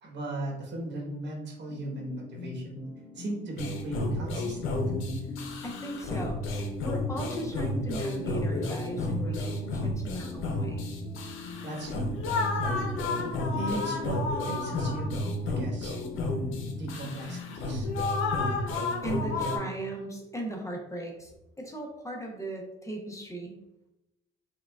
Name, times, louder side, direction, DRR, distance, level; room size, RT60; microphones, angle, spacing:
voice 1, 0.0-2.8 3.1-4.6 11.6-12.1 13.1-16.0 16.7-17.9, right 1 dB, 65° right, -2 dB, 1.2 m, -37 dB
sound 1, 1.7-18.2, left 5 dB, 55° left, 0.9 m, -44 dB
sound 2, 3.6-19.6, left 2 dB, 85° left, 0.6 m, -31 dB
voice 2, 5.6-10.9 19.0-23.5, right 2 dB, 15° left, 1 dB, 0.7 m, -37 dB
4.7 x 2.2 x 2.3 m, 0.90 s
cardioid pair, 90°, 20 cm